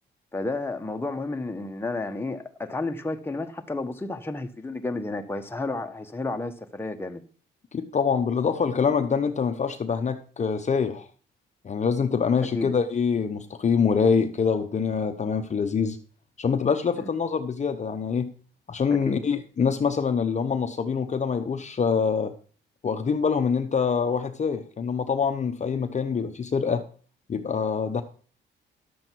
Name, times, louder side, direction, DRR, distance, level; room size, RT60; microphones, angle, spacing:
voice 1, 0.3-7.2 12.5-12.7 17.0-17.1 18.9-19.2, left 2 dB, 10° left, 1.1 m, -31 dB
voice 2, 7.7-11.1 11.6-16.0 16.4-18.3 18.7-22.3 22.8-26.8 27.3-28.0, left 6 dB, 35° left, 0.8 m, -25 dB
11.0 x 7.7 x 4.5 m
cardioid pair, 90°, 20 cm